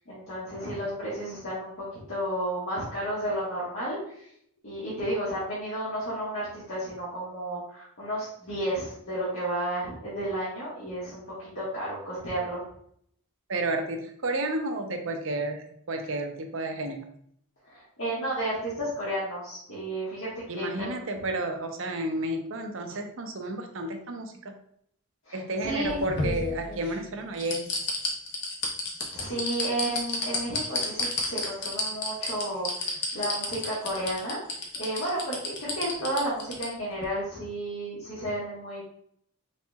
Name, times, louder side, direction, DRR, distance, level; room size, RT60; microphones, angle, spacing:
voice 1, 0.1-4.2 4.6-12.6 17.6-20.3 20.5-21.1 25.3-26.0 29.1-34.4 34.8-38.8, right 1 dB, 70° left, -10 dB, 1.6 m, -32 dB
voice 2, 13.5-17.1 20.5-24.5 25.3-27.7, right 2 dB, 65° right, 4 dB, 0.6 m, -31 dB
sound 1, 25.6-26.9 27.4-36.7 37.0-37.1, left 3 dB, 50° left, 1.0 m, -30 dB
4.2 x 4.0 x 2.3 m, 0.68 s
head